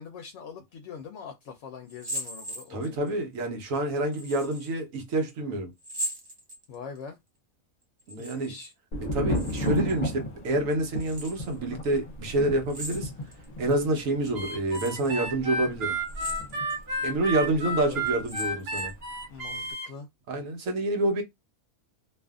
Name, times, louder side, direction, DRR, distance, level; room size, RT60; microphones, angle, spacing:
voice 1, 0.0-3.3 6.7-7.2 8.2-8.7 17.4-17.6 17.9-18.0 19.3-20.1, left 6 dB, 70° left, 0.8 m, -43 dB
sound 1, 1.9-3.1 4.1-4.7 5.8-7.0 8.0-8.7 9.0-10.0 11.0-11.5 12.7-13.4 14.0-14.1 14.7-15.1 16.0-16.8 17.3-17.4 18.1-19.0, equal, 25° right, 0.6 m, -39 dB
voice 2, 2.7-5.7 8.1-8.5 9.1-13.1 13.6-16.0 17.0-18.9 20.3-21.2, right 2 dB, 75° right, 1.2 m, -28 dB
Thunder, 8.9-18.6 18.8-19.5, equal, 45° left, 0.5 m, -35 dB
Harmonica, 14.3-19.9, right 1 dB, 50° right, 1.1 m, -32 dB
2.6 x 2.5 x 2.3 m
omnidirectional pair, 1.4 m